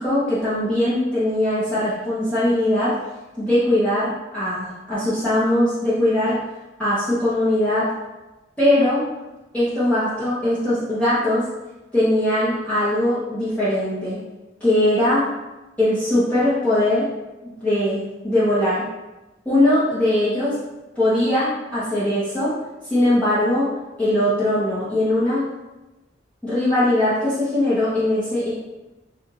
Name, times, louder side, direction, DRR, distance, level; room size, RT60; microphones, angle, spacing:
voice 1, 0.0-3.0 3.4-6.4 6.8-7.9 8.6-9.0 9.5-11.4 11.9-14.2 14.6-15.3 15.8-17.1 17.4-18.9 19.4-20.6 21.0-22.5 22.9-23.7 24.0-25.5 26.4-28.5, left 1 dB, 10° left, -12 dB, 1.0 m, -20 dB
6.9 x 2.5 x 2.9 m, 1.1 s
head